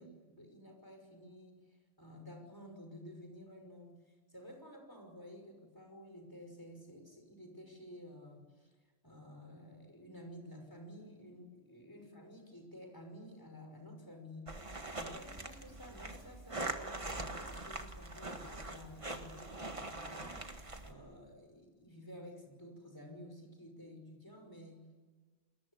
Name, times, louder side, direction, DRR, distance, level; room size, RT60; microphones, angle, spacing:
voice 1, 0.0-8.7 9.0-24.8, equal, 15° left, 4 dB, 5.7 m, -52 dB
sound 1, 14.5-20.9, right 2 dB, 25° right, 1.8 m, -43 dB
29.5 x 22.0 x 8.5 m, 1.4 s
omnidirectional pair, 1.2 m